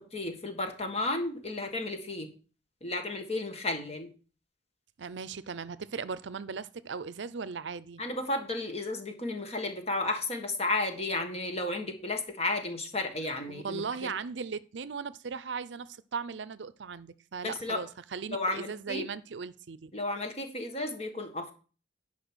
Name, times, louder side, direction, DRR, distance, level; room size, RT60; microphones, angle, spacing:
voice 1, 0.1-2.3 2.8-4.1 8.0-14.1 17.4-17.8 18.3-19.1 19.9-21.5, left 2 dB, 35° left, 1.7 m, -33 dB
voice 2, 5.0-8.0 13.5-19.9, right 5 dB, 75° right, 0.6 m, -38 dB
10.5 x 5.4 x 6.3 m
head